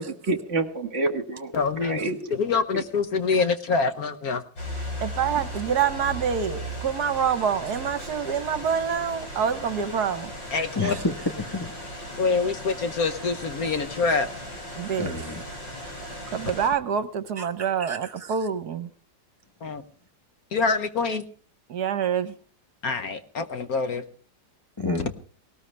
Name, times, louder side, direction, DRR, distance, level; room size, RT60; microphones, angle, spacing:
voice 1, 0.0-1.5 1.8-2.3 2.7-2.8, right 2 dB, 40° right, 1.6 m, -28 dB
voice 2, 1.5-2.0 2.3-4.4 10.5-10.9 12.2-14.3 19.6-19.8 20.5-21.2 22.8-24.0, left 4 dB, 55° left, 1.3 m, -25 dB
sound 1, 4.6-16.7, equal, 75° left, 7.4 m, -37 dB
voice 3, 5.0-10.3 14.8-15.1 16.0-18.9 21.7-22.3, right 7 dB, 65° right, 1.3 m, -26 dB
voice 4, 10.7-11.8 15.0-15.4 17.4-17.5 17.8-18.4 24.8-25.1, left 2 dB, 15° left, 0.9 m, -30 dB
18.5 x 18.5 x 3.3 m
omnidirectional pair, 2.0 m